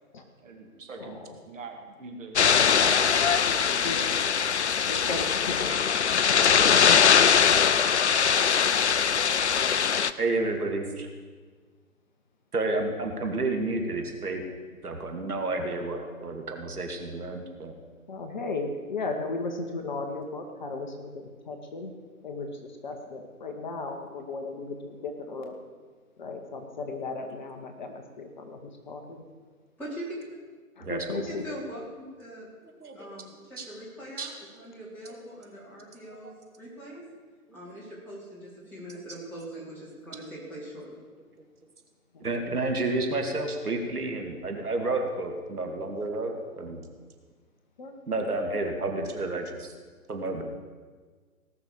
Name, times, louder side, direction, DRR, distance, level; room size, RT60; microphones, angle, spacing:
voice 1, 0.4-3.1 3.5-4.5, right 3 dB, 55° right, 2 dB, 2.6 m, -43 dB
sound 1, 2.4-10.1, left 7 dB, 50° left, 0.5 m, -22 dB
voice 2, 4.9-5.8 18.1-21.1 21.5-21.9 22.2-22.6 22.8-25.5 26.2-29.2 30.8-31.4 47.8-47.9, left 3 dB, 30° left, 4 dB, 1.1 m, -35 dB
voice 3, 10.2-11.1 12.5-14.4 14.8-17.7 30.8-31.3 32.8-32.9 33.6-33.7 34.2-34.3 35.1-35.2 36.0-36.1 40.0-40.3 41.4-41.5 42.2-46.8 48.1-49.7 50.1-50.4, right 2 dB, 75° right, 3 dB, 2.4 m, -30 dB
voice 4, 29.8-30.2 31.3-31.8 32.2-32.5 33.0-37.0 37.5-41.0, right 1 dB, 5° left, -8 dB, 3.1 m, -42 dB
18.0 x 6.3 x 6.9 m, 1.5 s
figure-of-eight pair, 150°, 45 cm